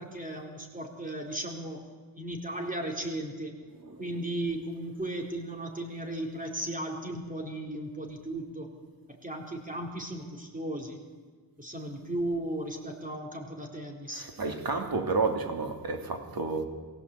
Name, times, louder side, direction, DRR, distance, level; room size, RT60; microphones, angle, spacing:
voice 1, 0.0-1.9 2.2-3.5 4.0-8.7 9.2-11.0 11.6-14.3, right 1 dB, 20° right, 4.4 m, -36 dB
voice 2, 14.1-16.7, right 3 dB, 60° right, 2.8 m, -31 dB
23.5 x 16.5 x 8.7 m
wide cardioid pair, 95°, 41 cm